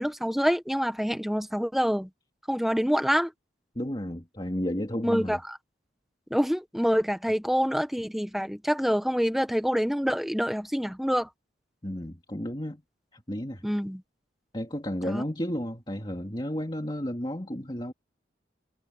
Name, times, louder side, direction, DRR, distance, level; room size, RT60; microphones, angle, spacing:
voice 1, 0.0-2.1 2.5-3.3 5.0-5.6 6.3-11.3 13.6-14.0 15.1-15.2, equal, ahead, 1.2 m, -26 dB
voice 2, 3.7-5.4 11.8-12.8 13.1-13.6 14.5-17.9, equal, 25° left, 2.6 m, -32 dB
head